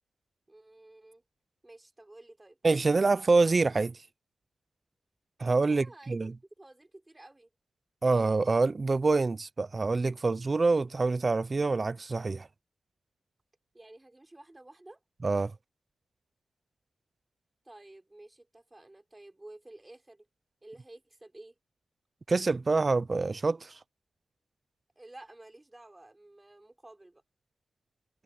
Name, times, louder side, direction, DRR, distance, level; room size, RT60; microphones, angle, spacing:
voice 1, 0.5-1.2 1.6-2.6 5.7-7.5 13.7-15.0 17.6-20.3 20.6-21.5 25.0-27.2, right 2 dB, 15° right, 4.1 m, -52 dB
voice 2, 2.6-3.9 5.4-6.3 8.0-12.5 15.2-15.5 22.3-23.7, right 3 dB, 35° right, 0.4 m, -26 dB
wide cardioid pair, 110°, 0 cm